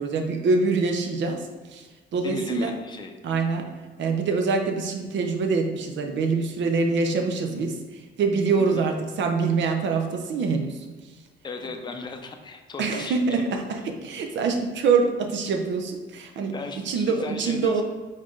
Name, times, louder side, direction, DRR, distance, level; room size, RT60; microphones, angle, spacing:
voice 1, 0.0-1.9 2.1-2.7 3.2-3.7 4.0-10.9 12.8-16.5 16.9-17.8, right 4 dB, 65° right, 4 dB, 0.7 m, -25 dB
voice 2, 2.2-3.1 8.6-8.9 11.4-13.5 16.5-17.8, left 3 dB, 20° left, 4 dB, 0.5 m, -36 dB
4.1 x 3.9 x 3.1 m, 1.4 s
cardioid pair, 90°, 20 cm